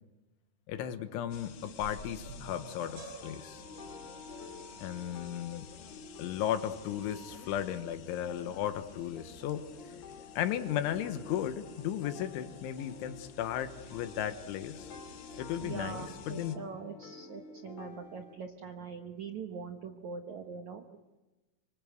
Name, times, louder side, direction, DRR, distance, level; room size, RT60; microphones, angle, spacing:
voice 1, 0.7-3.6 4.8-5.7 6.2-9.9 10.4-14.9 15.4-16.6, left 10 dB, 90° left, 10 dB, 3.7 m, -35 dB
sound 1, 1.3-16.6, left 8 dB, 60° left, 2.7 m, -52 dB
sound 2, 1.8-8.0, right 3 dB, 55° right, 5.8 m, -51 dB
sound 3, 3.2-18.4, left 4 dB, 40° left, 3.9 m, -51 dB
voice 2, 15.6-20.9, right 5 dB, 75° right, 5 dB, 1.7 m, -42 dB
26.0 x 25.0 x 8.0 m, 1.1 s
omnidirectional pair, 5.3 m